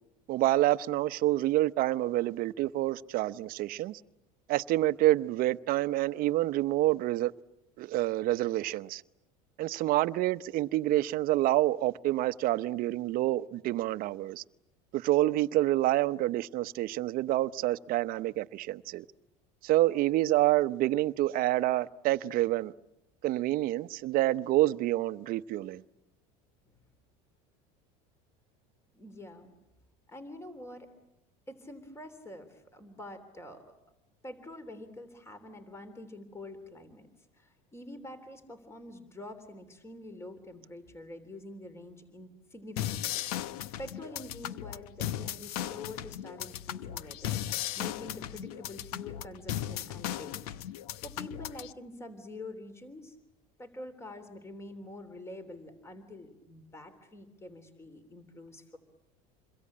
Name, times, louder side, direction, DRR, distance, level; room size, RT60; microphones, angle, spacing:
voice 1, 0.3-4.0 4.5-7.3 7.8-9.0 9.6-14.4 14.9-19.0 19.6-22.7 23.2-25.8, right 15 dB, 50° right, 0.9 m, -27 dB
voice 2, 28.9-29.5 30.1-30.9 31.5-33.7 34.2-37.1 37.3-50.6 51.0-53.2 53.6-58.8, left 1 dB, 15° left, 3.4 m, -46 dB
sound 1, 42.8-51.7, left 11 dB, 90° left, 0.9 m, -37 dB
28.0 x 22.5 x 8.7 m
supercardioid pair, 125°, 19 cm